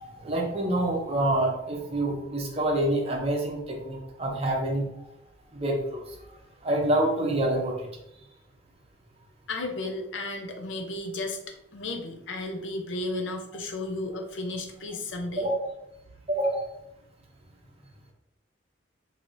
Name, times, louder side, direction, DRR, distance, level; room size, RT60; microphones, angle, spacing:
voice 1, 0.0-5.1 5.5-6.2 6.6-7.9 15.4-15.5 16.3-16.7, right 1 dB, 30° right, 0 dB, 0.7 m, -27 dB
voice 2, 9.5-15.5, left 2 dB, 75° left, 4 dB, 0.6 m, -34 dB
4.7 x 2.7 x 2.6 m, 0.81 s
head